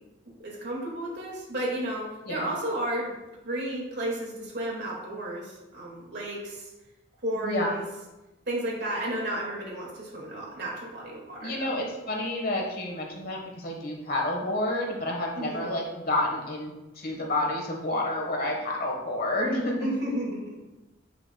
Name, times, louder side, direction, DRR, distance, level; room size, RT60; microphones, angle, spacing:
voice 1, 0.4-3.1 3.4-6.7 7.2-7.8 8.5-11.8 15.4-15.7 19.8-20.6, right 1 dB, 55° right, -2 dB, 2.0 m, -32 dB
voice 2, 7.4-7.7 11.4-19.9, left 1 dB, 50° left, 0 dB, 1.3 m, -29 dB
7.7 x 5.9 x 2.3 m, 1.0 s
head